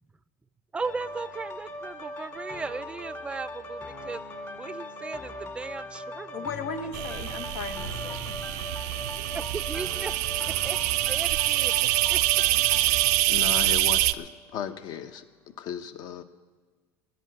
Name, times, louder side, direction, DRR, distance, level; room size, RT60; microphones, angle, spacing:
voice 1, 0.7-4.2 4.5-6.4 9.3-10.2 10.5-12.4, right 4 dB, 15° right, 13 dB, 0.4 m, -37 dB
sound 1, 0.8-14.5 15.0-15.1, left 1 dB, 35° left, 2.1 m, -40 dB
voice 2, 6.3-8.4, left 5 dB, 85° left, 9 dB, 1.1 m, -37 dB
sound 2, 6.9-14.1, right 18 dB, 75° right, 0.4 m, -25 dB
voice 3, 13.3-15.3 15.6-16.2, left 9 dB, 55° left, 10 dB, 0.9 m, -35 dB
10.5 x 9.6 x 9.7 m, 1.4 s
supercardioid pair, 125°, 8 cm